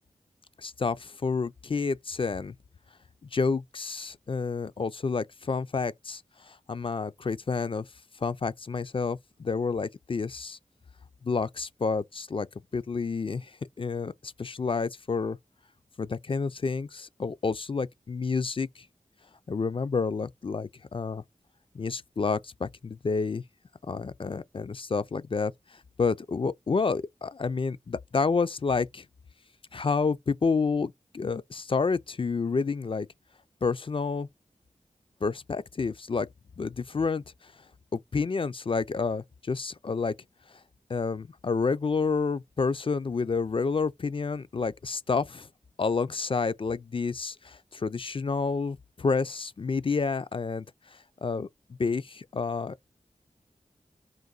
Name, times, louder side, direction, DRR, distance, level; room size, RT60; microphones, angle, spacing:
voice 1, 0.6-2.5 3.3-7.9 8.2-10.6 11.2-12.5 12.7-13.5 13.8-15.4 16.0-18.9 19.5-21.2 21.7-23.4 23.9-25.5 26.0-29.1 29.7-33.1 33.6-34.3 35.2-36.3 36.6-37.2 37.9-40.1 40.9-45.5 45.8-50.6 51.2-51.5 51.8-52.9, left 4 dB, 40° left, 0.4 m, -29 dB
3.8 x 2.6 x 3.9 m
wide cardioid pair, 65°, 13 cm